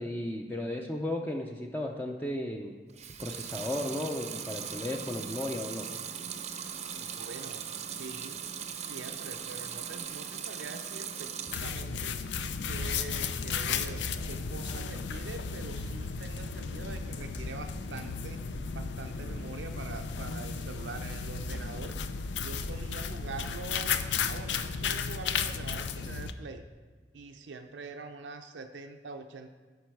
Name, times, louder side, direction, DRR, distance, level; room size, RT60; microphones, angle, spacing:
voice 1, 0.0-2.8 3.2-5.8, left 1 dB, 10° left, 1 dB, 0.5 m, -35 dB
Water tap faucet / Sink (filling or washing) / Liquid, 2.9-11.8 12.2-13.0, right 7 dB, 40° right, 0.6 m, -39 dB
voice 2, 6.8-8.4 8.7-12.2 12.7-18.4 18.7-22.0 22.4-24.0 24.3-26.6 27.1-29.5, right 3 dB, 85° right, 6 dB, 0.5 m, -44 dB
sound 1, 11.5-26.3, left 5 dB, 75° left, 0.5 m, -34 dB
13.0 x 5.4 x 4.6 m, 1.4 s
head